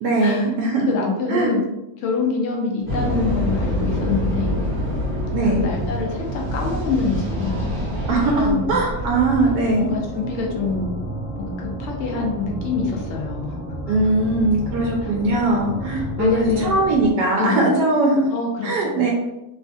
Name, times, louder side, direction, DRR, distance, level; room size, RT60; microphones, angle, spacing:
voice 1, 0.0-0.9 1.3-1.5 5.3-5.7 8.1-9.9 13.9-18.2 18.6-19.1, right 2 dB, 80° right, -2 dB, 1.2 m, -20 dB
voice 2, 0.9-1.6 2.0-4.6 5.4-7.6 8.4-8.7 9.8-10.9 11.4-13.6 15.0-15.1 16.2-16.8 17.4-17.7 18.3-19.0, left 4 dB, 80° left, 0 dB, 0.6 m, -25 dB
sound 1, 2.8-17.1, right 1 dB, 10° right, 0.5 m, -32 dB
sound 2, 2.9-9.6, left 1 dB, 45° right, 0.7 m, -26 dB
3.1 x 2.5 x 2.4 m, 0.95 s
omnidirectional pair, 1.8 m